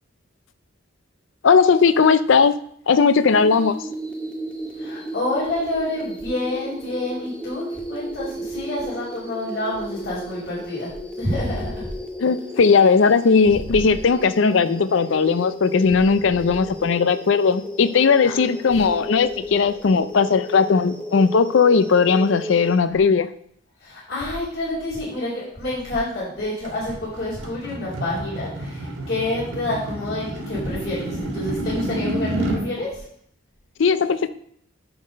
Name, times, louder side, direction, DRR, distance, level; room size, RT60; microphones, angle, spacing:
voice 1, 1.4-2.6 2.9-3.8 12.2-23.3 33.8-34.3, left 5 dB, 65° left, 14 dB, 0.4 m, -17 dB
sound 1, 3.3-22.8, equal, 5° left, 0.8 m, -34 dB
voice 2, 4.7-10.9 11.2-11.9 18.2-18.3 23.8-33.0, left 1 dB, 50° left, -9 dB, 4.3 m, -28 dB
sound 2, 26.6-32.6, right 1 dB, 80° right, 1.7 m, -29 dB
10.0 x 4.0 x 6.4 m, 0.66 s
head